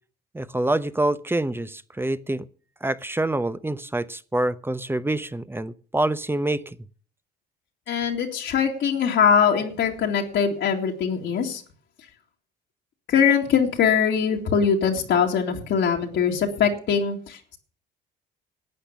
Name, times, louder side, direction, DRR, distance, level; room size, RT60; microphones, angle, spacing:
voice 1, 0.3-2.4 2.8-6.8, right 1 dB, 10° right, 15 dB, 0.8 m, -26 dB
voice 2, 7.9-11.6 13.1-17.6, left 7 dB, 65° left, 0 dB, 2.3 m, -22 dB
12.0 x 8.6 x 7.2 m, 0.42 s
supercardioid pair, 65°, 20 cm